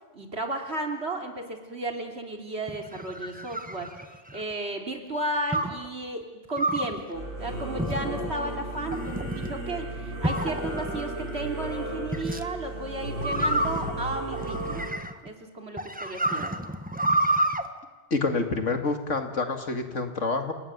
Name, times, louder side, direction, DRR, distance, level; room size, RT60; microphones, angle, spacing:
voice 1, 0.1-3.9 4.3-6.2 6.5-14.9 15.2-16.6, right 2 dB, 60° right, 3 dB, 3.6 m, -34 dB
sound 1, 2.7-4.5 5.5-5.9 6.6-7.0 7.8-8.3 8.9-9.5 10.2-11.0 12.1-12.4 13.2-15.3 15.8-17.6, right 1 dB, 5° right, 1.2 m, -29 dB
Singing / Musical instrument, 7.1-14.9, right 1 dB, 90° right, 7.6 m, -34 dB
voice 2, 18.1-20.5, left 3 dB, 90° left, 6 dB, 2.6 m, -27 dB
29.0 x 18.5 x 9.6 m, 1.3 s
omnidirectional pair, 1.2 m